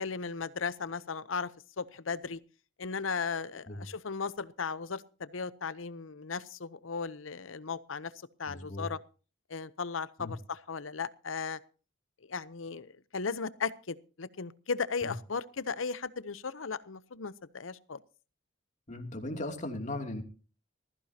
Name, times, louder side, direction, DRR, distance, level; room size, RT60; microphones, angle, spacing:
voice 1, 0.0-1.5 1.8-2.4 2.8-8.1 8.4-9.0 9.5-11.6 12.2-18.0, left 5 dB, 85° left, 0.8 m, -36 dB
voice 2, 8.5-8.9 10.2-10.3 15.0-15.1 18.9-20.2, left 1 dB, 40° left, 2.8 m, -37 dB
20.5 x 15.0 x 2.9 m
head